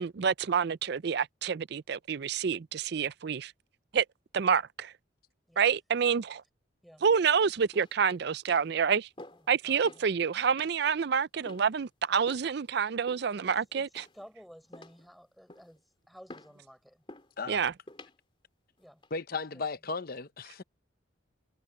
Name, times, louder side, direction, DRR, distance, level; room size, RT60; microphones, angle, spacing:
voice 1, 0.0-3.5 3.9-4.0 4.3-4.9 5.6-6.4 7.0-9.1 9.5-14.0 17.5-17.7, right 6 dB, 55° right, 0.4 m, -28 dB
sound 1, 7.7-8.1 8.5-8.7 9.2-9.5 9.8-10.1 10.6-10.8 11.4-11.8 12.3-12.5 13.1-13.5 13.9-14.3 14.7-15.1 15.5-15.8 16.3-16.6 17.1-17.3 17.9-18.2 18.8-19.1, left 1 dB, 25° left, 3.3 m, -50 dB
voice 2, 9.4-10.1 13.2-17.0 18.8-19.0 19.5-19.7, equal, ahead, 6.0 m, -54 dB
voice 3, 19.1-20.6, left 4 dB, 45° left, 0.8 m, -35 dB
head